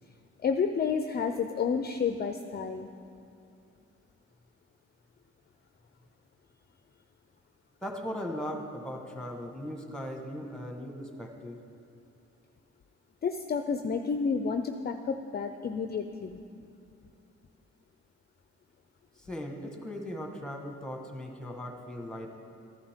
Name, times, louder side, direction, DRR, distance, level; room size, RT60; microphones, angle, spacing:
voice 1, 0.4-2.9 13.2-16.4, left 5 dB, 35° left, 7 dB, 0.5 m, -30 dB
voice 2, 7.8-11.6 19.2-22.3, equal, ahead, 2 dB, 1.5 m, -38 dB
14.0 x 11.0 x 3.7 m, 2.5 s
cardioid pair, 90°, 30 cm